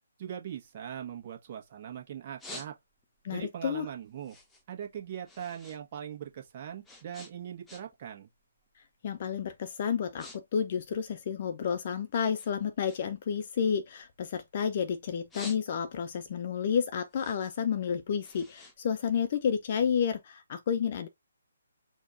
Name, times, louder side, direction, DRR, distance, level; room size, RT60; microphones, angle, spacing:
voice 1, 0.2-2.7 3.3-4.4 4.7-8.3, right 9 dB, 40° right, 1.3 m, -40 dB
sound 1, 0.6-1.8 2.1-3.2 3.6-5.8 6.1-8.1 8.4-8.8 9.4-9.5 9.8-10.4 10.6-11.9 12.3-14.7 15.1-16.1 16.5-19.6, left 2 dB, 5° left, 0.9 m, -50 dB
voice 2, 3.2-3.9 9.0-21.1, left 7 dB, 45° left, 0.6 m, -31 dB
4.4 x 2.4 x 3.9 m
figure-of-eight pair, 140°, 0 cm